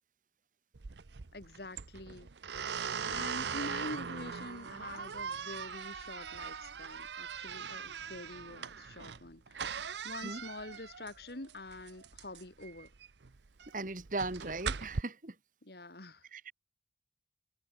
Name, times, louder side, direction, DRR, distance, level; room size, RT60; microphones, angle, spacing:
sound 1, 0.7-15.0, right 6 dB, 85° right, 0.8 m, -40 dB
voice 1, 1.3-2.8 3.0-12.9 15.6-16.2, left 2 dB, 65° left, 2.6 m, -46 dB
voice 2, 13.7-15.4 16.3-16.5, right 2 dB, 50° right, 2.0 m, -38 dB
head